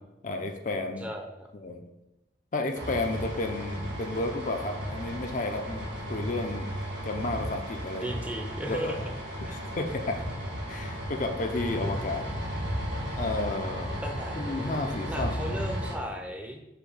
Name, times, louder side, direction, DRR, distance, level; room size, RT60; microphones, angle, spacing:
voice 1, 0.2-1.1 1.6-1.8 2.5-6.7 7.0-8.1 8.7-8.9 9.5-10.2 10.7-12.3 13.2-14.0 14.4-15.4, left 2 dB, 45° left, 5 dB, 0.5 m, -32 dB
voice 2, 1.0-1.5 8.0-9.1 9.4-9.6 10.1-10.2 14.0-16.6, right 1 dB, 10° right, 2 dB, 0.6 m, -36 dB
sound 1, 2.7-16.0, equal, 70° right, 1.9 m, -35 dB
6.9 x 2.8 x 5.4 m, 0.95 s
head